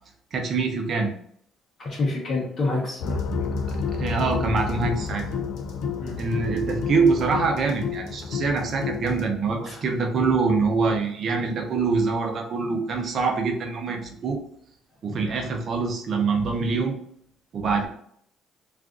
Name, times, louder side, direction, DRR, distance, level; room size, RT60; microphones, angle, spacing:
voice 1, 0.3-1.1 3.7-5.3 6.2-14.4 15.0-17.0 17.5-17.9, right 4 dB, 50° right, 3 dB, 0.7 m, -24 dB
voice 2, 1.8-3.2 6.0-6.1 9.6-9.7, left 3 dB, 45° left, -5 dB, 0.9 m, -27 dB
sound 1, 3.0-9.3, left 5 dB, 75° left, 0.4 m, -30 dB
2.5 x 2.4 x 3.7 m, 0.65 s
cardioid pair, 110°, 0 cm